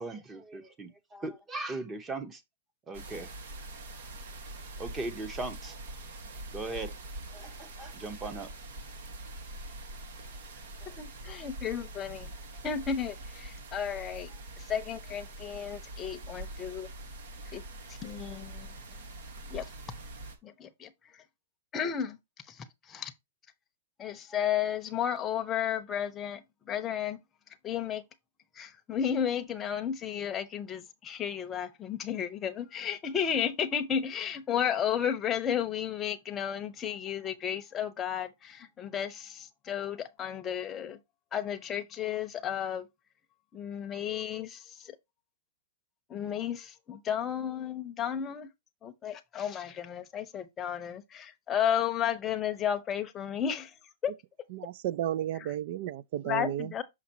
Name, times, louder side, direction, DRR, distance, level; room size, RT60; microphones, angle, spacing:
voice 1, 0.0-2.4 2.9-3.3 4.8-5.8 6.5-6.9 7.3-8.5 10.3-10.4 10.8-11.0, right 2 dB, 15° right, 0.9 m, -38 dB
sound 1, 2.9-20.3, right 1 dB, 65° right, 1.7 m, -44 dB
voice 2, 11.0-12.3 12.6-16.9 17.5-17.6 17.9-18.7 19.5-19.7 20.4-21.2 21.7-22.2 22.5-23.1 24.0-27.2 27.6-28.0 28.6-41.0 41.3-42.9 43.5-45.0 46.1-48.5 48.8-53.7 54.0-54.1 56.2-56.8, left 8 dB, 20° left, 0.8 m, -33 dB
voice 3, 54.5-56.7, right 12 dB, 50° right, 0.3 m, -33 dB
6.0 x 5.8 x 2.8 m
hypercardioid pair, 155°, 0 cm